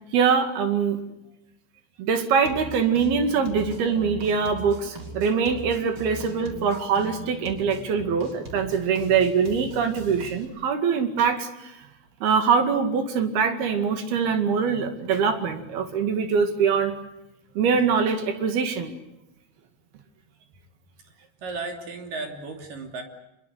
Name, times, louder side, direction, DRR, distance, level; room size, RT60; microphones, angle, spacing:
voice 1, 0.1-1.0 2.0-11.8 12.2-17.0 17.6-18.9, right 6 dB, 75° right, 7 dB, 4.1 m, -23 dB
sound 1, 2.4-10.5, right 2 dB, 35° right, 4.3 m, -40 dB
voice 2, 21.2-23.0, right 3 dB, 60° right, 3 dB, 4.6 m, -35 dB
26.0 x 22.0 x 8.1 m, 0.91 s
omnidirectional pair, 4.5 m